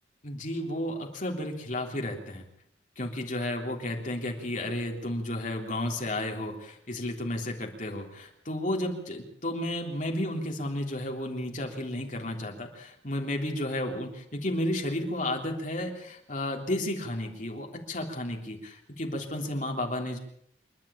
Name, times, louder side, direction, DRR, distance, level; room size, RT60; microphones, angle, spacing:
voice 1, 0.2-2.4 3.0-20.2, left 1 dB, 45° left, 2 dB, 3.4 m, -32 dB
27.0 x 11.5 x 8.8 m, 0.74 s
head